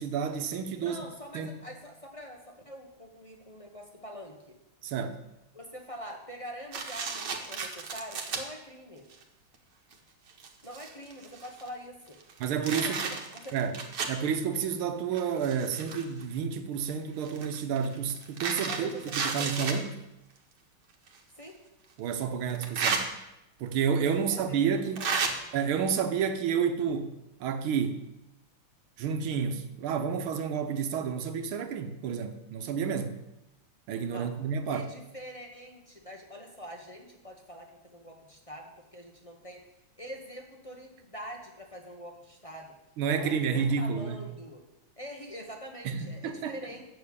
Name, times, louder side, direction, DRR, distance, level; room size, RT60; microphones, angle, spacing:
voice 1, 0.0-1.0 1.3-1.6 4.8-5.2 12.4-13.1 13.5-13.8 14.1-19.9 22.0-23.1 23.6-25.1 25.5-28.0 29.0-33.2 33.9-34.8 43.0-44.2 45.9-46.6, right 6 dB, 75° right, 8 dB, 1.7 m, -30 dB
voice 2, 0.8-4.6 5.5-9.1 10.6-12.2 12.6-13.6 18.6-19.8 21.4-21.6 24.1-24.6 25.0-25.4 34.1-34.3 34.7-39.6 40.0-42.7 43.1-44.6 45.0-46.8, equal, 25° left, 2 dB, 0.7 m, -44 dB
sound 1, 6.7-8.4 9.1-9.2 9.9-10.0 10.3-11.7 12.2-14.2 15.1-16.2 17.2-19.8 21.1-21.2 22.5-23.0 24.1-24.2 25.0-25.3, right 5 dB, 55° right, 1.7 m, -33 dB
7.6 x 6.9 x 8.3 m, 0.91 s
omnidirectional pair, 2.4 m